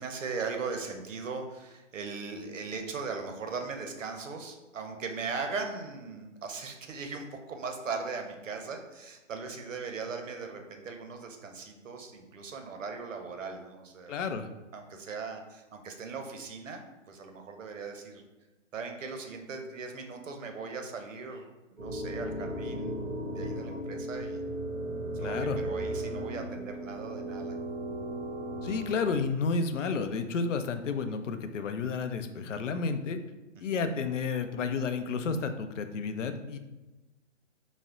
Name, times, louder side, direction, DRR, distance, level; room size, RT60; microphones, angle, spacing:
voice 1, 0.0-14.3 14.7-16.8 17.1-18.2 18.7-23.0 23.3-24.4 25.2-27.6 33.6-33.8, right 4 dB, 90° right, 5 dB, 0.8 m, -39 dB
voice 2, 14.1-14.5 25.2-25.6 28.6-33.2 33.6-36.6, left 5 dB, 75° left, 8 dB, 0.5 m, -31 dB
sound 1, 21.8-29.1, right 1 dB, ahead, 1.1 m, -36 dB
4.2 x 2.1 x 3.6 m, 1.1 s
hypercardioid pair, 170°, 37 cm